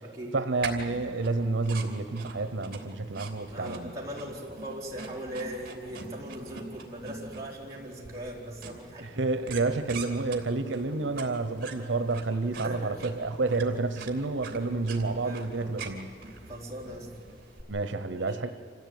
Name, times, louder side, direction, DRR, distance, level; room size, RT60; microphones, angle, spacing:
voice 1, 0.3-3.9 9.0-16.1 17.7-18.5, right 3 dB, 85° right, 10 dB, 0.9 m, -29 dB
sound 1, 0.6-17.6, right 4 dB, 50° right, 2.9 m, -44 dB
voice 2, 3.2-9.1 12.6-13.0 15.2-15.8 16.5-17.1 17.7-17.8 18.2-18.5, right 1 dB, 20° right, -4 dB, 4.2 m, -40 dB
27.0 x 15.5 x 9.4 m, 2.9 s
head